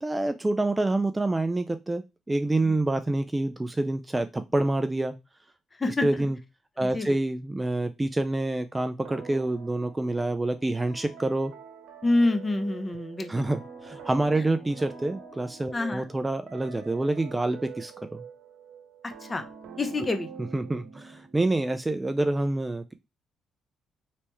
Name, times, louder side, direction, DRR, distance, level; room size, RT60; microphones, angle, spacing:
voice 1, 0.0-5.2 6.0-6.4 6.8-11.5 13.3-18.2 20.5-22.9, right 2 dB, 15° right, 8 dB, 0.3 m, -27 dB
voice 2, 5.8-6.2 6.8-7.2 12.0-13.4 15.7-16.1 19.2-19.4 19.8-20.3, left 2 dB, 25° left, 7 dB, 0.7 m, -27 dB
sound 1, 9.1-21.4, right 5 dB, 90° right, 0.8 m, -46 dB
3.3 x 3.2 x 3.0 m, 0.24 s
cardioid pair, 90°, 0 cm